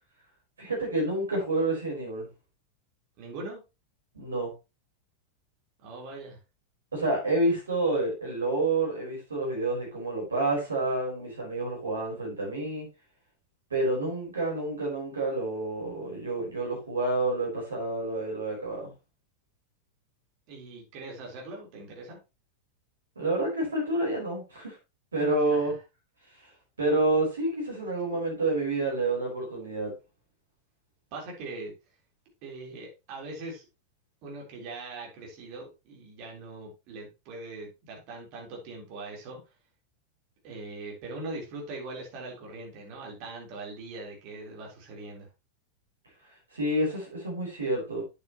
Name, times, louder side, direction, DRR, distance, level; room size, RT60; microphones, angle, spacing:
voice 1, 0.6-2.3 4.1-4.5 6.9-12.9 13.7-18.9 23.2-24.8 25.1-25.7 26.8-29.9 46.5-48.2, right 2 dB, 70° right, 4.5 m, -28 dB
voice 2, 3.2-3.6 5.8-6.4 20.5-22.2 25.5-25.7 31.1-31.7 32.4-33.7 34.2-39.4 40.4-45.3, right 2 dB, 45° right, 4.1 m, -41 dB
8.6 x 8.3 x 3.1 m
figure-of-eight pair, 90°, 0 cm